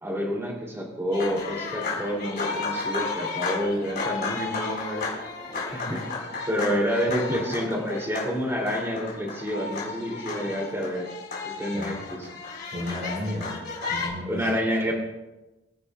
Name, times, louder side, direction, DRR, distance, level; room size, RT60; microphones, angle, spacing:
voice 1, 0.0-5.1 5.7-6.0 6.5-11.1 11.4-12.2 14.3-14.9, equal, 15° right, -1 dB, 2.8 m, -28 dB
sound 1, 1.1-14.1, left 4 dB, 55° left, 4.5 m, -33 dB
voice 2, 11.7-12.0 12.7-13.6 13.9-14.5, left 1 dB, 45° right, -5 dB, 5.0 m, -33 dB
26.0 x 10.0 x 2.3 m, 1.1 s
head